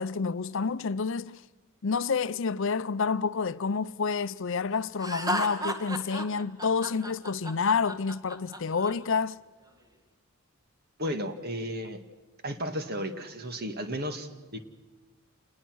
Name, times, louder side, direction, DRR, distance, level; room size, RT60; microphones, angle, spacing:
voice 1, 0.0-1.4 1.8-9.4, left 5 dB, 60° left, 0.6 m, -29 dB
Laughter, 5.0-8.9, equal, 15° right, 1.8 m, -33 dB
voice 2, 11.0-12.0 12.4-14.6, equal, 45° right, 1.9 m, -34 dB
27.5 x 20.0 x 6.3 m
head